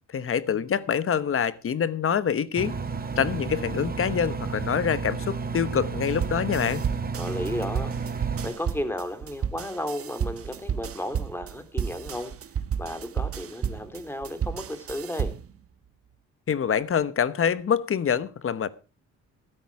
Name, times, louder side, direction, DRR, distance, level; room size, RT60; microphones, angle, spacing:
voice 1, 0.1-2.7 3.2-6.8 16.5-18.7, left 7 dB, 45° left, 1.1 m, -25 dB
Engine, 2.6-8.5, right 5 dB, 30° right, 2.4 m, -32 dB
sound 1, 6.1-15.6, right 7 dB, 50° right, 1.3 m, -32 dB
voice 2, 7.1-7.9 8.4-12.3 12.8-15.3, left 1 dB, 5° left, 3.1 m, -33 dB
14.0 x 12.5 x 4.7 m
cardioid pair, 90°, 30 cm